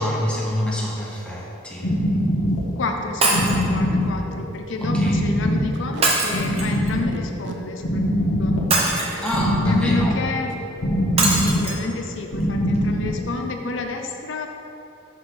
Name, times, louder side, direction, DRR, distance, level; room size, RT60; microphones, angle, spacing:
voice 1, 0.0-2.0 4.8-5.2 9.2-10.2, equal, 5° left, -4 dB, 1.0 m, -26 dB
sound 1, 1.8-13.6, equal, 90° left, 1.0 m, -23 dB
Packing tape duct tape, 2.7-2.8 3.0-3.2 3.7-3.8 4.0-4.2 4.5-4.7 5.7-6.1 7.1-7.6 8.6-8.9 10.4-10.6 11.0-11.2 11.4-11.8, right 3 dB, 60° right, 0.6 m, -40 dB
voice 2, 2.8-8.5 9.7-10.6 11.2-14.5, left 3 dB, 65° left, 4 dB, 0.5 m, -30 dB
Shatter, 3.2-3.7 6.0-6.9 8.7-9.5 11.2-11.8 12.4-12.5 12.8-12.9, right 2 dB, 30° right, 0.9 m, -22 dB
6.0 x 5.1 x 5.8 m, 2.7 s
head